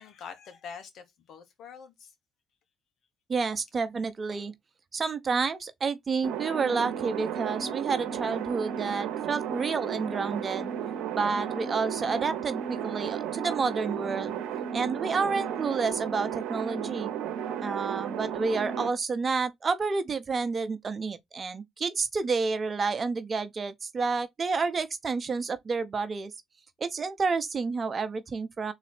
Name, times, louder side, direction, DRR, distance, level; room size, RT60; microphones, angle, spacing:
voice 1, 0.0-2.1, left 6 dB, 65° left, 1.4 m, -45 dB
voice 2, 3.3-4.5 4.9-10.7 11.1-14.4 14.7-17.1 17.6-26.3 26.8-28.7, right 4 dB, 40° right, 0.9 m, -30 dB
sound 1, 6.2-18.9, right 9 dB, 75° right, 0.9 m, -34 dB
3.9 x 3.1 x 4.3 m
supercardioid pair, 65°, 0 cm